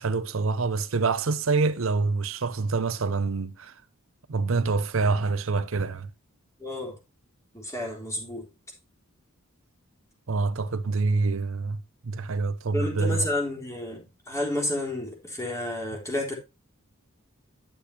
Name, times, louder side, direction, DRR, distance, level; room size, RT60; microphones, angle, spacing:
voice 1, 0.0-3.8 4.3-6.1 10.3-13.3, right 4 dB, 65° right, 0.6 m, -26 dB
voice 2, 6.6-7.0 7.5-8.5 12.7-16.4, left 1 dB, 15° left, 3.7 m, -31 dB
10.5 x 8.4 x 2.9 m
head